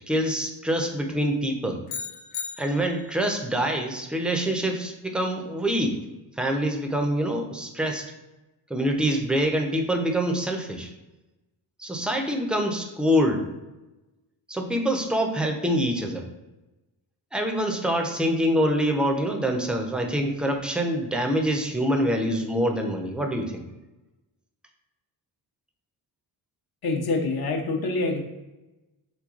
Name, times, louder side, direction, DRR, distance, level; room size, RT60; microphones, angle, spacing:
voice 1, 0.1-1.8 2.6-6.0 6.4-8.1 8.7-10.9 11.8-13.5 14.5-16.3 17.3-23.6, equal, ahead, 3 dB, 0.5 m, -25 dB
sound 1, 1.9-3.3, left 7 dB, 80° left, 0.5 m, -36 dB
voice 2, 26.8-28.2, left 3 dB, 50° left, 3 dB, 0.8 m, -26 dB
3.4 x 3.1 x 2.4 m, 1.0 s
supercardioid pair, 45°, 49 cm